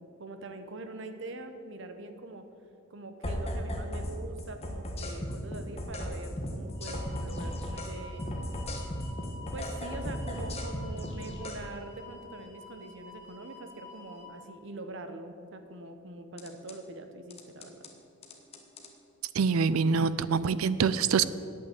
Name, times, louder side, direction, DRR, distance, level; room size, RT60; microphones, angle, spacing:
voice 1, 0.0-2.4 2.9-8.2 9.5-17.9, right 2 dB, 60° right, 7 dB, 1.0 m, -43 dB
sound 1, 3.2-4.1 4.4-7.9 8.2-11.6 16.4-16.7 17.3-17.9 18.2-18.9, left 1 dB, 30° left, 1.3 m, -36 dB
sound 2, 6.7-14.3, left 2 dB, 50° left, 2.6 m, -49 dB
voice 2, 19.3-21.3, right 5 dB, 80° right, 16 dB, 0.5 m, -25 dB
8.9 x 8.6 x 8.3 m, 2.7 s
head